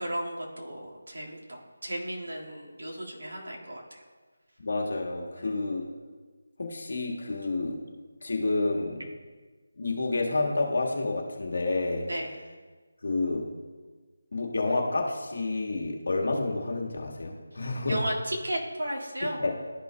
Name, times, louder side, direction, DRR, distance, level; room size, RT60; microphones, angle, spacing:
voice 1, 0.0-4.0 5.4-5.5 12.1-12.3 17.8-19.4, right 1 dB, 70° right, -2 dB, 1.8 m, -34 dB
voice 2, 4.6-5.8 6.6-7.8 8.2-9.0 9.8-12.1 13.0-13.4 14.3-18.0 19.4-19.5, left 2 dB, 65° left, 0 dB, 1.5 m, -29 dB
12.5 x 5.3 x 2.2 m, 1.4 s
figure-of-eight pair, 170°, 0 cm